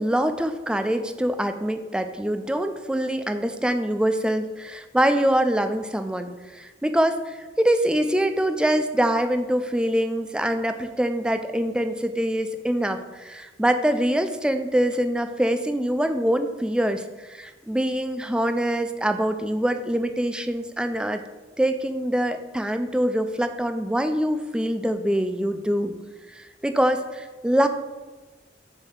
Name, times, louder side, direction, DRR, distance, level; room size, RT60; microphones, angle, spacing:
voice 1, 0.0-21.2 21.6-25.9 26.3-27.7, right 1 dB, 5° right, 8 dB, 0.3 m, -24 dB
6.7 x 2.7 x 5.7 m, 1.2 s
head